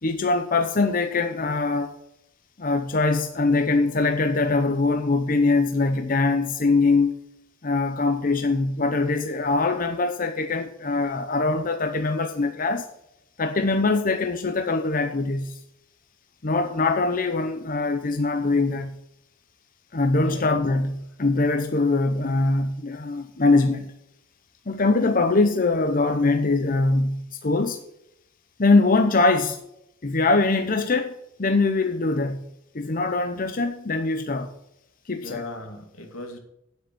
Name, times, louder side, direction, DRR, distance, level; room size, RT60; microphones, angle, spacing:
voice 1, 0.0-1.9 2.6-7.2 7.6-12.8 13.4-15.6 16.4-19.0 19.9-23.9 24.7-27.8 28.6-29.6 30.0-32.5 32.7-34.5 35.1-35.4, left 3 dB, 40° left, 0.8 m, -22 dB
voice 2, 35.2-36.4, left 2 dB, 85° left, 2.5 m, -37 dB
9.5 x 8.1 x 6.1 m
head